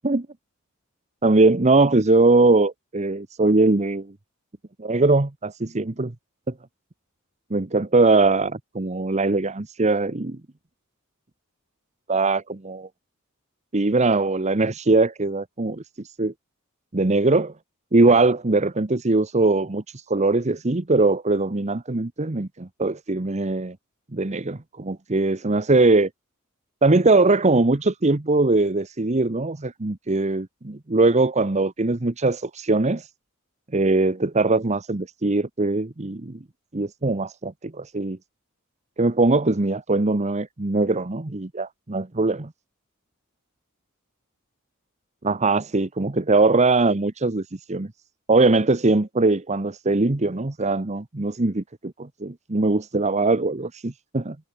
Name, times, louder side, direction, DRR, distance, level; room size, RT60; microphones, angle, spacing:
voice 1, 1.2-4.1 4.8-6.1 7.5-10.4 12.1-12.9 13.7-15.8 16.2-16.3 16.9-17.5 17.9-23.8 24.1-26.1 26.8-33.1 33.7-36.4 36.7-38.2 39.0-42.5 45.2-47.9 48.3-54.4, right 3 dB, 35° right, 1.0 m, -21 dB
head